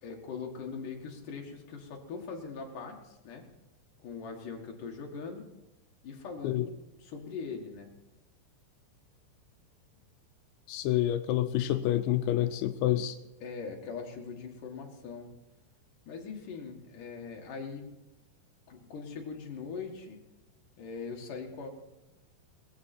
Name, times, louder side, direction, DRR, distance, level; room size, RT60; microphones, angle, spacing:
voice 1, 0.0-3.5 4.0-5.4 6.0-6.7 7.0-7.9 13.4-15.3 16.1-17.9 18.7-20.2 20.8-21.7, left 5 dB, 55° left, 1 dB, 2.8 m, -41 dB
voice 2, 10.7-13.2, left 13 dB, 80° left, 9 dB, 2.8 m, -28 dB
20.0 x 14.5 x 4.4 m, 1.0 s
omnidirectional pair, 5.6 m